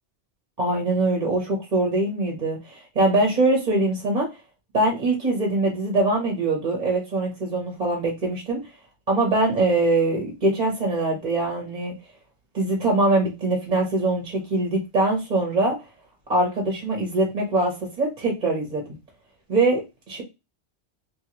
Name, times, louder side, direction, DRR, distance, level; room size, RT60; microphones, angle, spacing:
voice 1, 0.6-4.3 4.7-8.6 9.1-11.9 12.5-15.8 16.3-19.0 19.5-20.2, right 2 dB, 40° right, 1 dB, 1.0 m, -23 dB
3.2 x 3.0 x 2.8 m, 0.25 s
omnidirectional pair, 1.1 m